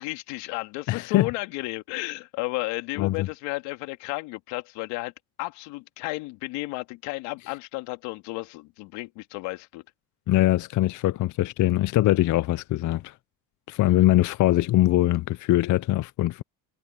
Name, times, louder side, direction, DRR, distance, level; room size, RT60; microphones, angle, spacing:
voice 1, 0.0-5.1 5.4-9.8, left 22 dB, 90° left, 2.3 m, -33 dB
voice 2, 0.9-1.3 3.0-3.3 10.3-13.1 13.7-16.4, left 16 dB, 45° left, 0.5 m, -22 dB
cardioid pair, 110°, 42 cm